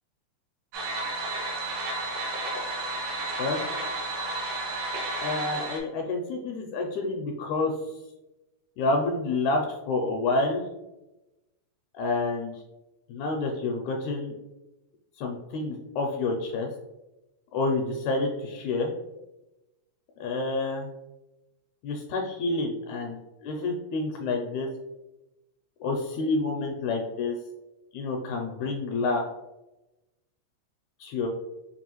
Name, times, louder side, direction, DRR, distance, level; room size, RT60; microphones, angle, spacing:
sound 1, 0.7-5.8, right 2 dB, 80° right, 1.2 m, -32 dB
voice 1, 5.2-7.9 8.8-10.7 11.9-12.6 13.1-14.3 15.2-16.7 17.5-18.9 20.2-20.9 21.8-23.2 23.4-24.7 25.8-27.4 27.9-29.2 31.0-31.3, left 3 dB, 80° left, 1 dB, 1.8 m, -28 dB
5.3 x 2.4 x 2.9 m, 0.99 s
omnidirectional pair, 3.5 m